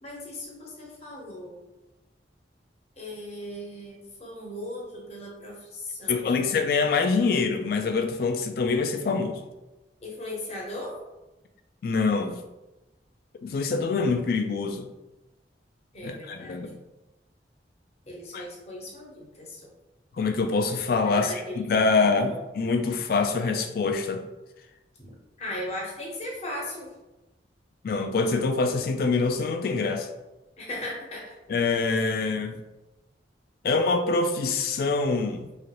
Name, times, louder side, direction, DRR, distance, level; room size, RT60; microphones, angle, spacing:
voice 1, 0.0-1.6 3.0-6.5 10.0-11.0 15.9-16.6 18.1-19.7 21.1-21.6 21.9-22.4 25.0-26.9 30.6-31.4, left 1 dB, 35° left, -3 dB, 0.8 m, -38 dB
voice 2, 6.1-9.4 11.8-12.4 13.4-14.9 16.0-16.8 18.3-18.4 20.2-24.2 27.8-30.1 31.5-32.6 33.6-35.5, left 4 dB, 55° left, 6 dB, 0.3 m, -25 dB
2.9 x 2.4 x 2.9 m, 1.0 s
head